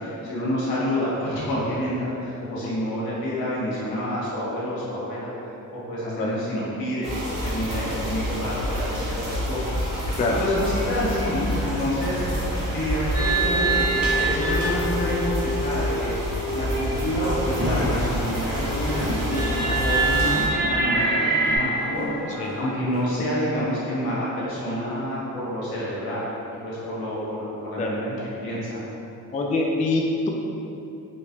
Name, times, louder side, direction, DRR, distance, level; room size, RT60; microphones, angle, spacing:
voice 1, 0.0-12.2 12.7-22.1 22.6-26.3 26.6-28.1 28.4-28.8, left 1 dB, 75° left, -7 dB, 1.2 m, -28 dB
sound 1, 7.0-20.5, equal, 80° right, 1.0 m, -28 dB
sound 2, 9.4-23.4, equal, 45° left, 1.4 m, -39 dB
sound 3, 13.1-18.0 18.3-21.6, right 3 dB, 35° right, 1.2 m, -26 dB
voice 2, 29.3-30.3, left 2 dB, 20° left, -1 dB, 0.3 m, -25 dB
3.2 x 3.0 x 2.8 m, 2.9 s
cardioid pair, 70°, 37 cm